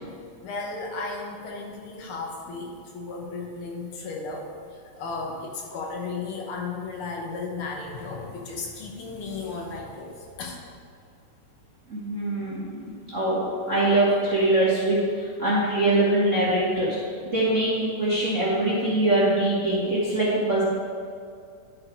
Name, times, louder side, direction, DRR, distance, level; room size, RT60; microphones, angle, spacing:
voice 1, 0.4-10.6, left 3 dB, 70° left, 0 dB, 1.3 m, -35 dB
voice 2, 11.9-17.0 17.2-20.6, right 1 dB, 55° right, -8 dB, 0.8 m, -23 dB
12.0 x 4.3 x 4.5 m, 2.3 s
omnidirectional pair, 3.6 m